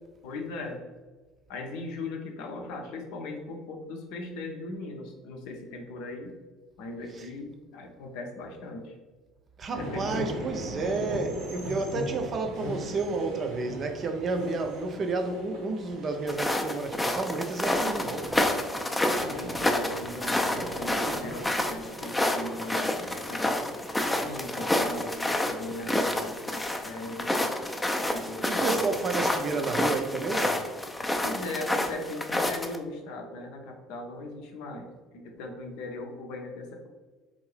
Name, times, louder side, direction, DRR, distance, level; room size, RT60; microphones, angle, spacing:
voice 1, 0.2-0.8 1.5-6.3 6.8-7.5 7.7-8.9 9.7-10.4 19.3-23.5 24.0-27.5 27.8-28.8 31.2-34.9 35.1-36.9, left 2 dB, 60° left, 0.6 m, -39 dB
voice 2, 9.6-18.5 28.2-30.6, right 3 dB, 40° right, 0.5 m, -31 dB
sound 1, 9.7-24.7, equal, 70° right, 0.8 m, -41 dB
sound 2, 16.3-32.8, left 1 dB, 10° left, 0.4 m, -29 dB
3.7 x 2.6 x 3.2 m
figure-of-eight pair, 60°, 0 cm